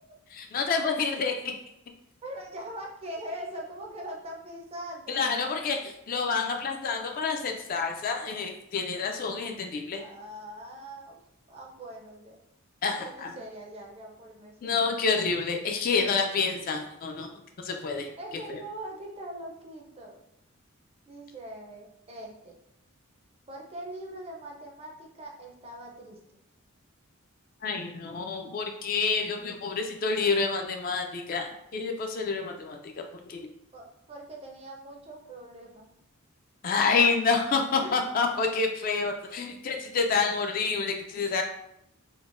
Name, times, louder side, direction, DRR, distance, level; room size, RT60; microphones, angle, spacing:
voice 1, 0.3-1.6 5.1-10.0 12.8-13.3 14.6-17.3 17.6-18.1 18.5-18.6 27.6-33.5 36.6-41.4, left 4 dB, 40° left, 3 dB, 0.3 m, -28 dB
voice 2, 2.2-5.3 10.0-11.2 11.5-12.4 12.9-14.7 15.9-16.0 18.2-20.2 21.1-22.5 23.5-26.2 33.7-35.9 37.8-37.9, right 1 dB, 30° right, 0 dB, 0.4 m, -42 dB
3.7 x 2.0 x 2.4 m, 0.78 s
head